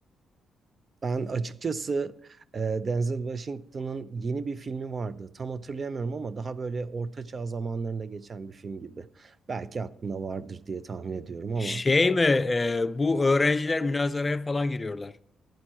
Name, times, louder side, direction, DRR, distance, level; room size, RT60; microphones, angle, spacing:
voice 1, 1.0-11.8, right 4 dB, 45° right, 0.6 m, -33 dB
voice 2, 11.6-15.1, left 3 dB, 30° left, 0.5 m, -24 dB
11.5 x 9.4 x 4.4 m
hypercardioid pair, 50°, 0 cm